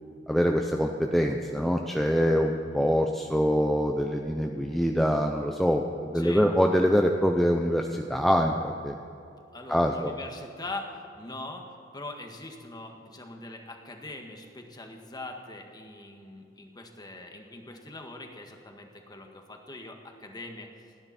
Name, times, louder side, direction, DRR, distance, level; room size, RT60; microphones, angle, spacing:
voice 1, 0.3-8.9 9.7-10.1, equal, ahead, 2 dB, 0.7 m, -24 dB
voice 2, 6.1-6.4 9.5-21.1, left 2 dB, 20° left, 3 dB, 1.7 m, -42 dB
29.0 x 10.5 x 4.3 m, 2.6 s
head